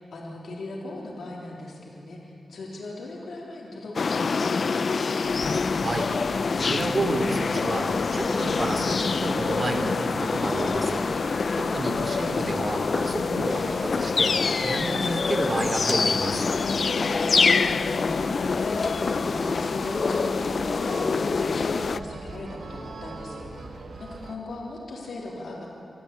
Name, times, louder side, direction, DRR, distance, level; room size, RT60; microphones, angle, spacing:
voice 1, 0.0-5.2 16.9-25.7, left 2 dB, 75° left, -3 dB, 3.6 m, -38 dB
sound 1, 3.9-22.0, left 4 dB, 55° left, 0.5 m, -25 dB
sound 2, 5.2-24.4, right 3 dB, 70° right, 1.7 m, -42 dB
voice 2, 5.8-6.1 6.6-16.4, right 2 dB, 35° right, 4 dB, 2.9 m, -30 dB
25.5 x 14.0 x 8.5 m, 2.7 s
wide cardioid pair, 100°, 0 cm